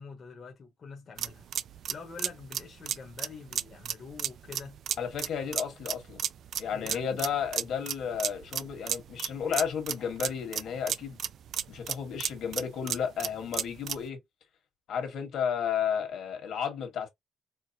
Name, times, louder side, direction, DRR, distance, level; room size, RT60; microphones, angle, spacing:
voice 1, 0.0-1.5 1.9-4.8 6.7-7.2, left 4 dB, 35° left, 0.9 m, -45 dB
sound 1, 1.2-14.1, right 9 dB, 55° right, 0.3 m, -34 dB
voice 2, 5.0-6.2 6.6-11.2 11.7-14.2 14.9-17.1, left 7 dB, 65° left, 1.5 m, -33 dB
4.6 x 2.1 x 2.7 m
cardioid pair, 170°, 0 cm